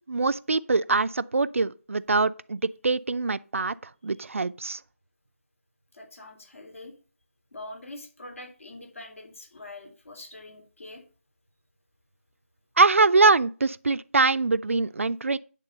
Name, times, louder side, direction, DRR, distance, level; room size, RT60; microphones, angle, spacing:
voice 1, 0.1-3.7 4.0-4.8 12.8-15.4, right 3 dB, 65° right, 0.5 m, -23 dB
voice 2, 5.9-6.9 7.5-11.0, left 2 dB, 70° left, 3.3 m, -44 dB
9.9 x 3.7 x 6.5 m
figure-of-eight pair, 165°, 8 cm